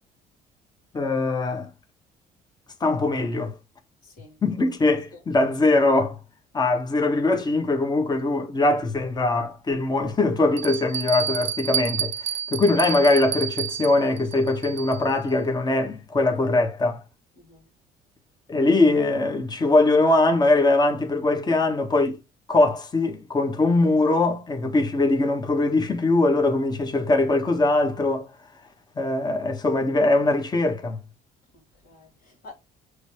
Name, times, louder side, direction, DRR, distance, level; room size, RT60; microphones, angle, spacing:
voice 1, 0.9-1.7 2.8-3.5 4.4-6.2 6.5-17.0 18.5-22.2 22.5-28.3 29.0-31.0, left 2 dB, 25° left, 1.4 m, -21 dB
voice 2, 4.0-4.4 5.1-5.2 17.4-17.7 31.5-32.5, left 3 dB, 70° left, 2.5 m, -49 dB
Bell, 9.0-9.1 9.7-9.8 10.6-15.1, right 9 dB, 40° right, 0.4 m, -30 dB
6.5 x 3.3 x 4.9 m
cardioid pair, 110°, 17 cm